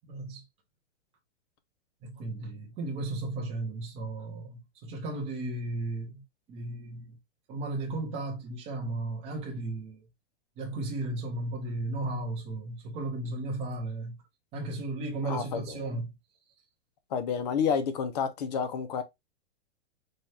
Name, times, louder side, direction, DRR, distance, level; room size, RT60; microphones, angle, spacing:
voice 1, 0.1-0.4 2.0-6.2 6.5-7.2 7.5-10.0 10.6-14.2 14.5-16.1, right 2 dB, 15° right, 0.8 m, -35 dB
voice 2, 15.2-15.8 17.1-19.0, left 7 dB, 35° left, 0.6 m, -30 dB
4.3 x 2.3 x 3.2 m
hypercardioid pair, 160°, 35 cm